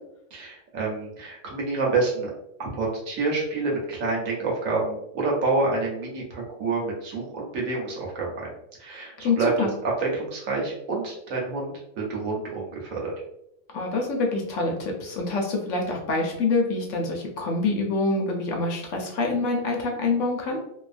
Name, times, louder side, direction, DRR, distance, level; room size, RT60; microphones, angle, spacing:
voice 1, 0.3-2.3 2.6-8.5 8.8-13.1, right 3 dB, 75° right, -2 dB, 1.1 m, -28 dB
voice 2, 9.2-9.7 13.7-20.6, left 3 dB, 70° left, 1 dB, 0.9 m, -26 dB
2.6 x 2.3 x 2.4 m, 0.78 s
omnidirectional pair, 1.5 m